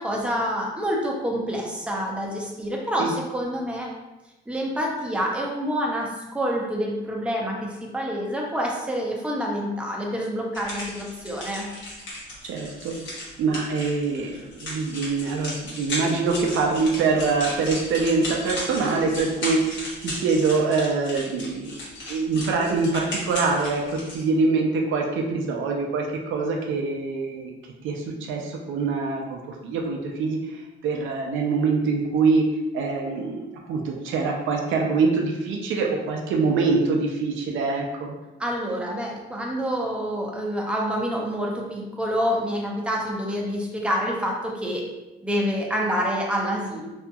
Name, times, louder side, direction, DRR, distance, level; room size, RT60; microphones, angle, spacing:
voice 1, 0.0-3.9 4.5-11.7 38.4-44.8 45.2-46.9, equal, 5° right, -2 dB, 0.5 m, -27 dB
sound 1, 10.5-24.2, left 1 dB, 70° left, 1.1 m, -35 dB
voice 2, 12.4-13.0 13.4-21.8 22.1-23.8 24.1-27.5 27.8-32.4 32.7-38.1, right 4 dB, 80° right, 0 dB, 0.5 m, -24 dB
2.7 x 2.4 x 2.3 m, 1.0 s
cardioid pair, 90°, 20 cm